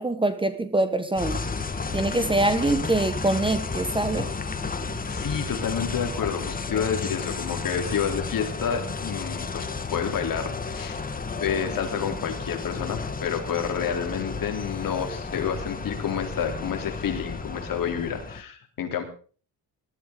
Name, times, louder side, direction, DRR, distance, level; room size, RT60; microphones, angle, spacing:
voice 1, 0.0-1.4 1.9-4.3, right 2 dB, 15° right, 1.1 m, -24 dB
sound 1, 1.2-18.4, left 4 dB, 20° left, 1.5 m, -32 dB
voice 2, 5.0-11.0 11.4-19.0, left 7 dB, 60° left, 3.4 m, -29 dB
20.0 x 13.5 x 3.8 m
cardioid pair, 140°, 37 cm